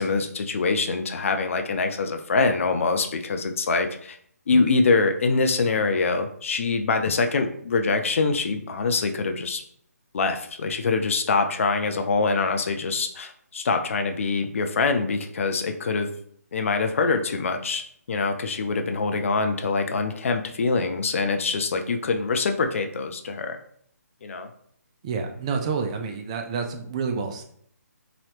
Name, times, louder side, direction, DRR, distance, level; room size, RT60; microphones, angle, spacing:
voice 1, 0.0-4.2 4.5-9.6 10.1-16.1 16.5-17.8 18.1-23.6 24.2-24.5, left 4 dB, 50° left, 6 dB, 0.4 m, -24 dB
voice 2, 25.0-27.4, right 5 dB, 20° right, 4 dB, 0.3 m, -28 dB
3.0 x 2.7 x 2.9 m, 0.64 s
figure-of-eight pair, 145°, 9 cm